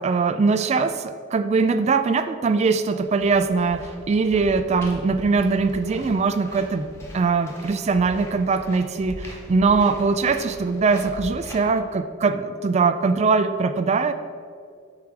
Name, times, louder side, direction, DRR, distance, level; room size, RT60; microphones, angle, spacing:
voice 1, 0.0-6.9 7.1-14.1, right 4 dB, 30° right, 10 dB, 0.3 m, -21 dB
sound 1, 3.0-11.5, equal, 10° left, 1.2 m, -40 dB
8.3 x 3.2 x 6.1 m, 2.1 s
head